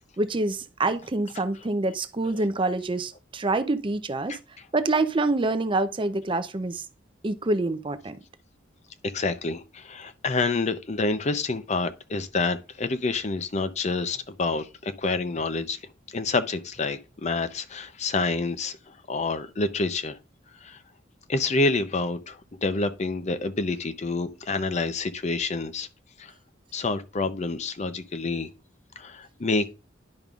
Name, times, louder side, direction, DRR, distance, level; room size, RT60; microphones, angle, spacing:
voice 1, 0.2-4.4 4.7-6.9 7.2-8.2, right 2 dB, 25° right, 0.5 m, -26 dB
voice 2, 9.1-15.8 16.1-18.8 19.1-20.2 20.6-20.8 21.3-25.9 26.2-26.3 26.7-28.5 29.0-29.7, left 3 dB, 35° left, 0.6 m, -28 dB
10.5 x 5.2 x 2.4 m
head